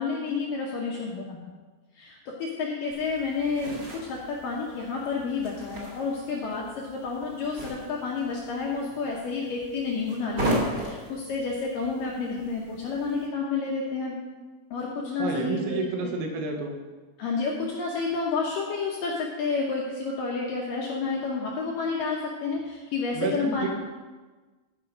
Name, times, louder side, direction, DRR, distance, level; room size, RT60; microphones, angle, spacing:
voice 1, 0.0-1.5 2.0-3.7 4.0-14.2 14.7-15.8 17.2-23.7, left 4 dB, 75° left, -2 dB, 2.0 m, -30 dB
sound 1, 2.9-13.3, right 1 dB, 40° right, 1.2 m, -37 dB
voice 2, 15.2-16.8 23.1-23.7, right 4 dB, 90° right, 2 dB, 3.6 m, -29 dB
15.0 x 5.0 x 5.1 m, 1.3 s
omnidirectional pair, 5.2 m